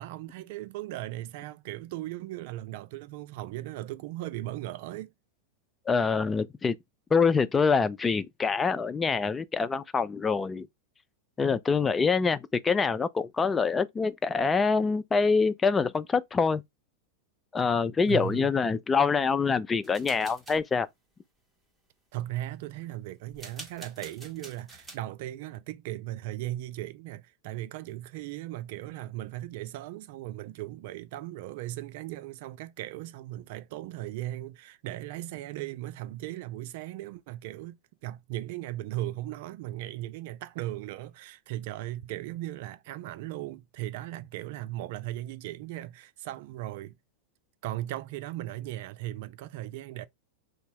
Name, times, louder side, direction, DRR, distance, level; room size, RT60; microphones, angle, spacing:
voice 1, 0.0-5.1 18.1-18.5 22.1-37.8 38.0-47.0 47.6-50.1, right 15 dB, 60° right, 0.3 m, -37 dB
voice 2, 5.9-6.8 7.1-10.7 11.4-16.6 17.5-20.9, left 5 dB, 20° left, 0.3 m, -25 dB
sound 1, 19.8-20.6 23.3-25.0, right 2 dB, 15° right, 1.2 m, -46 dB
2.7 x 2.0 x 2.9 m
hypercardioid pair, 100°, 0 cm